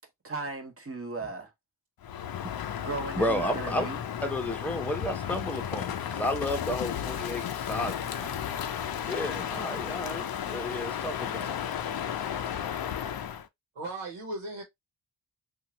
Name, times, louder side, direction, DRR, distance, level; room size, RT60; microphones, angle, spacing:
voice 1, 0.2-1.5 2.8-4.0, right 3 dB, 30° right, 1.1 m, -36 dB
Crow, 2.0-13.5, left 9 dB, 50° left, 0.5 m, -34 dB
voice 2, 3.2-3.9 4.2-8.4 9.1-11.5, left 1 dB, 5° left, 0.9 m, -32 dB
voice 3, 13.7-14.6, right 2 dB, 85° right, 1.2 m, -37 dB
2.7 x 2.5 x 2.9 m
cardioid pair, 60°, 48 cm